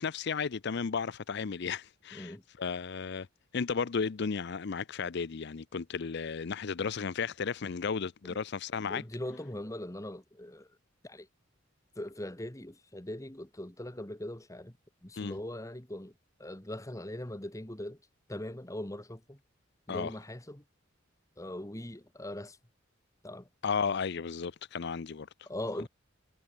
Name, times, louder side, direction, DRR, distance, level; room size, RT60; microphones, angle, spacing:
voice 1, 0.0-3.3 3.5-9.0 15.1-15.3 19.9-20.1 23.6-25.5, left 5 dB, 55° left, 0.5 m, -34 dB
voice 2, 2.1-2.4 8.2-8.4 8.9-10.7 11.0-11.3 11.9-14.8 15.0-16.1 16.4-18.0 18.3-19.4 19.9-20.6 21.4-22.6 23.2-23.5 25.5-25.9, left 1 dB, 15° left, 1.6 m, -40 dB
head